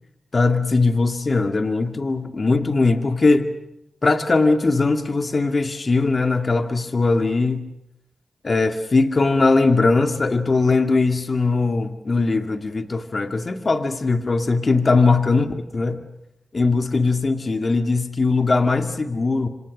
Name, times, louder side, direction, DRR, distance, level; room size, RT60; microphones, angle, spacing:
voice 1, 0.3-3.5 4.0-7.7 8.4-15.4 15.7-16.0 16.5-19.5, left 3 dB, 50° left, 7 dB, 2.2 m, -20 dB
27.0 x 26.5 x 6.6 m, 0.82 s
cardioid pair, 45°, 0 cm